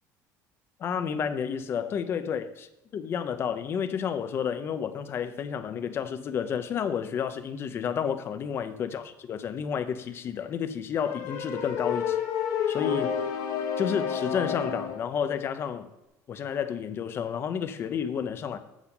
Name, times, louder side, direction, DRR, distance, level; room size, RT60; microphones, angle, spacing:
voice 1, 0.8-2.7 2.9-12.2 12.7-13.2 13.8-15.9 16.3-18.6, left 7 dB, 35° left, 10 dB, 0.7 m, -31 dB
sound 1, 11.0-15.0, left 7 dB, 65° left, 1.2 m, -30 dB
8.1 x 7.3 x 5.4 m, 0.95 s
cardioid pair, 160°, 7 cm